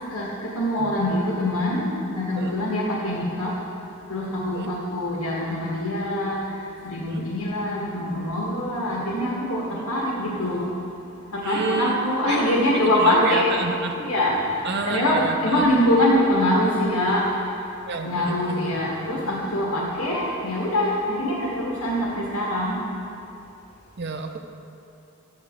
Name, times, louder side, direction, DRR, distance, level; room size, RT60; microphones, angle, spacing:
voice 1, 0.1-3.5 4.1-6.4 6.8-10.7 11.3-13.6 14.0-14.6 14.8-17.3 18.0-22.8, left 1 dB, 70° left, -4 dB, 1.5 m, -24 dB
voice 2, 0.8-1.2 2.4-2.5 4.5-4.7 7.1-7.3 9.7-9.9 11.4-12.0 12.2-12.4 12.8-14.0 14.6-15.7 17.9-19.3 24.0-24.4, right 4 dB, 50° right, 5 dB, 0.7 m, -30 dB
12.0 x 7.9 x 3.7 m, 2.8 s
head